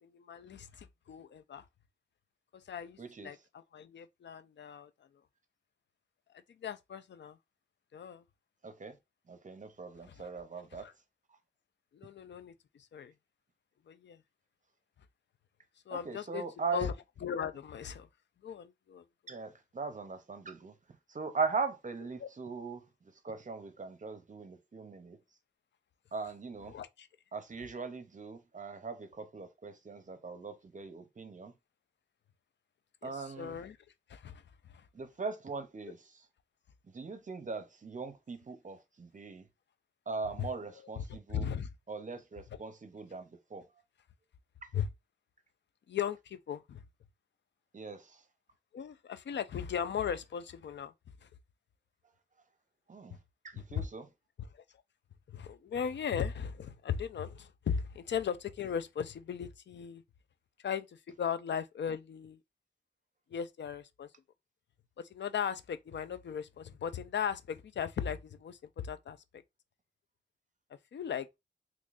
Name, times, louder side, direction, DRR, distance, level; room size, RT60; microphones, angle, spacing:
voice 1, 0.0-1.6 2.5-4.9 6.6-7.4 7.9-8.2 10.1-10.3 10.8-10.9 11.9-12.5 12.9-13.1 13.9-14.2 15.9-16.5 16.7-16.9 17.2-18.1 18.4-19.0 22.2-22.3 26.7-27.1 33.0-33.8 34.1-34.4 34.7-34.8 40.4-40.5 41.0-41.1 41.3-41.7 44.7-44.9 45.9-46.8 48.7-50.9 51.2-51.3 53.7-53.9 54.5-54.6 55.3-60.0 60.6-62.4 63.3-64.1 65.1-69.2 70.9-71.3, left 8 dB, 80° left, 0.4 m, -37 dB
voice 2, 3.0-3.4 8.6-9.0 9.3-10.9 15.9-16.9 19.3-20.7 21.1-25.2 26.1-26.7 27.3-31.5 33.0-33.6 34.9-36.3 36.9-39.4 40.1-41.5 41.9-43.7 44.6-44.7 47.7-48.2 52.9-53.2 53.4-54.1, right 4 dB, 45° right, 0.7 m, -40 dB
3.6 x 3.1 x 2.5 m
wide cardioid pair, 100°, 18 cm